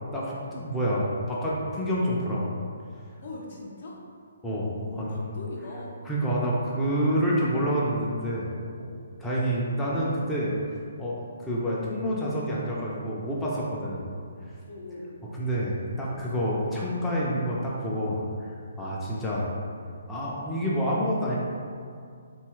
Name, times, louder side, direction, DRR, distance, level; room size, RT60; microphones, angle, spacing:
voice 1, 0.0-2.5 4.4-5.2 6.0-8.5 8.7-8.9 9.2-10.5 11.0-14.1 15.3-19.5 20.1-21.4, equal, 5° left, -8 dB, 0.4 m, -28 dB
voice 2, 3.2-4.0 4.7-6.0 13.9-14.1 14.7-15.1, left 2 dB, 55° left, -3 dB, 0.6 m, -40 dB
2.7 x 2.3 x 3.0 m, 2.2 s
figure-of-eight pair, 135°, 0 cm